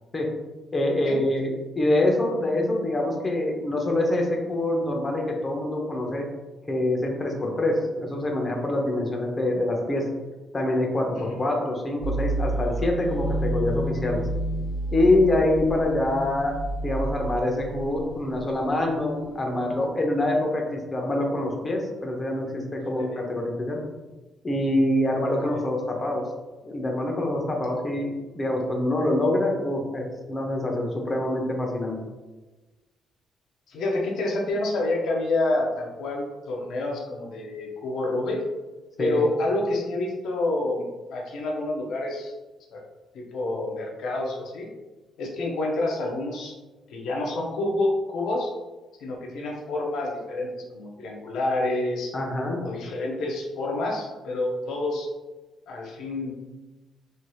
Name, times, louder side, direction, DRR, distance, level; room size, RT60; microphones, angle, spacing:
voice 1, 0.7-1.5 1.8-6.2 6.7-10.1 10.5-14.2 14.9-16.5 16.8-23.8 24.4-26.2 26.6-28.1 28.3-32.0 39.0-39.2 52.1-52.6, left 1 dB, 30° left, 1 dB, 0.7 m, -25 dB
sound 1, 12.0-19.9, right 1 dB, 35° right, 1.1 m, -31 dB
voice 2, 22.8-23.2 25.3-25.6 33.7-38.4 39.0-42.3 42.7-42.8 43.1-44.7 45.2-46.5 46.9-48.5 49.0-52.1 52.6-55.1 55.7-56.4, left 2 dB, 80° left, -1 dB, 0.6 m, -28 dB
3.2 x 2.7 x 2.3 m, 1.2 s
cardioid pair, 100°, 0 cm